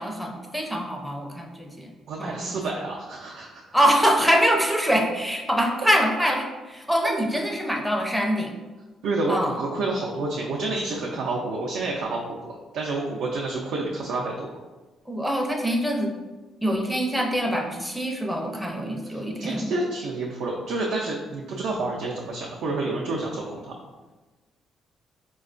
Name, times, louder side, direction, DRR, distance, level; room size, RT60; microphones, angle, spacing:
voice 1, 0.0-1.9 2.2-2.6 3.7-8.5 9.3-9.6 15.1-16.1 16.6-19.7, equal, ahead, 1 dB, 0.5 m, -24 dB
voice 2, 2.1-3.6 9.0-14.5 19.1-23.7, right 2 dB, 80° right, -3 dB, 0.4 m, -29 dB
4.1 x 2.2 x 2.4 m, 1.2 s
cardioid pair, 90°, 0 cm